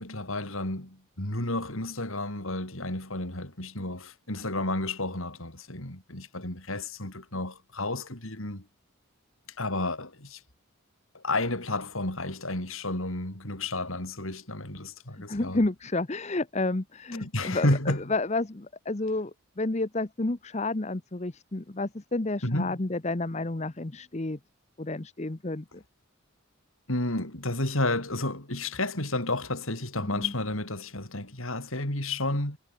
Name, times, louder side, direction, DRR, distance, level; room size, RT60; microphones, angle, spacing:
voice 1, 0.0-8.6 9.6-10.4 11.1-15.6 17.2-18.1 22.4-22.8 26.9-32.6, left 2 dB, 75° left, 5.8 m, -31 dB
voice 2, 15.2-24.4 24.8-25.8 30.0-30.3, left 2 dB, 30° left, 0.9 m, -31 dB
head